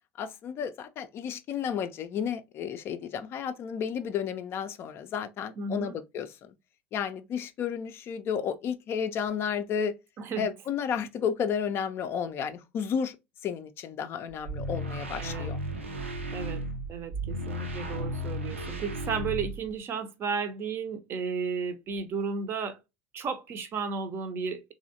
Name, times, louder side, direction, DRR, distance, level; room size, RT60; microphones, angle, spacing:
voice 1, 0.2-6.5 6.9-9.9 10.4-13.2 13.4-15.6, left 7 dB, 40° left, 0.4 m, -32 dB
voice 2, 5.6-6.0 10.2-10.5 15.2-15.5 16.3-16.6 16.9-22.8 23.1-24.7, right 5 dB, 35° right, 0.5 m, -33 dB
sound 1, 14.3-19.8, equal, 85° right, 0.5 m, -34 dB
3.1 x 2.7 x 2.4 m
figure-of-eight pair, 70°, 7 cm